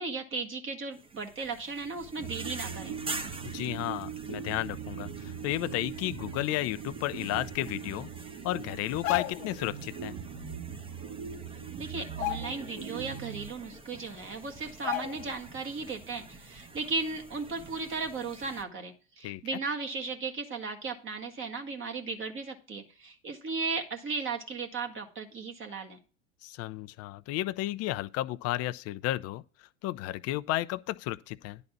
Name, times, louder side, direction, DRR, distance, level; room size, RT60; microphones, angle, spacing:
voice 1, 0.0-2.9 11.8-26.0, right 4 dB, 30° right, 1.7 m, -36 dB
sound 1, 0.9-18.6, right 3 dB, 15° right, 1.0 m, -47 dB
sound 2, 2.2-14.1, right 7 dB, 50° right, 2.2 m, -41 dB
voice 2, 3.4-8.1 8.4-10.1 19.2-19.4 26.4-29.4 29.8-31.6, left 16 dB, 40° left, 0.6 m, -33 dB
sound 3, 8.9-9.6 11.0-11.1 11.5-11.7 12.1-12.9 13.3-13.4 14.2-14.3 14.8-15.5 15.8-16.0, left 17 dB, 60° left, 1.0 m, -35 dB
10.5 x 4.1 x 7.0 m
hypercardioid pair, 90°, 38 cm